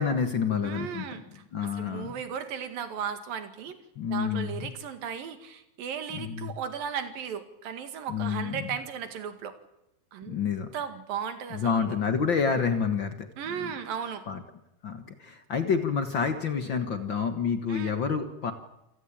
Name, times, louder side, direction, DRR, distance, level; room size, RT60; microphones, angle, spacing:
voice 1, 0.0-1.2 1.5-2.1 4.0-4.7 6.1-6.5 8.1-8.7 10.3-10.7 11.5-13.3 13.6-13.7 14.3-14.4 14.8-18.5, left 6 dB, 70° left, 8 dB, 1.1 m, -28 dB
voice 2, 0.6-3.8 4.1-9.6 10.1-10.4 10.7-12.0 13.4-14.2 17.7-17.9, right 7 dB, 70° right, 9 dB, 3.7 m, -36 dB
28.0 x 17.0 x 8.8 m, 0.88 s
omnidirectional pair, 4.4 m